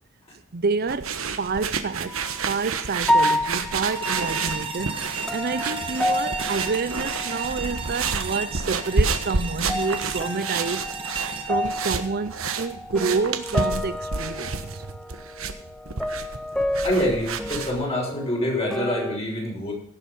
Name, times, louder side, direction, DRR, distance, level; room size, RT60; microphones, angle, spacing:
voice 1, 0.5-2.2 2.4-10.9 11.4-14.9, right 4 dB, 50° right, 0.6 m, -28 dB
sound 1, 0.9-17.9, right 4 dB, 75° right, 1.3 m, -30 dB
sound 2, 2.1-2.5 3.0-7.9 8.2-9.0 9.4-19.2, left 1 dB, 5° left, 0.5 m, -30 dB
sound 3, 3.9-13.0, right 5 dB, 25° right, 1.5 m, -34 dB
voice 2, 16.8-19.7, left 1 dB, 30° left, 5.9 m, -26 dB
17.0 x 7.8 x 5.5 m
head